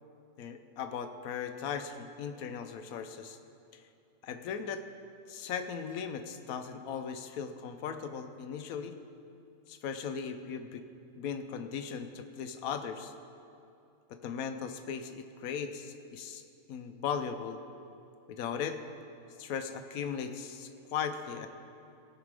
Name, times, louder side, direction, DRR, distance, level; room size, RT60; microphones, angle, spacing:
voice 1, 0.4-3.4 3.7-3.8 4.2-4.8 5.3-9.0 9.7-10.9 11.1-13.1 14.1-16.4 16.7-17.6 18.3-18.8 19.4-21.5, left 7 dB, 70° left, 8 dB, 1.1 m, -38 dB
16.5 x 5.8 x 4.8 m, 2.7 s
omnidirectional pair, 1.6 m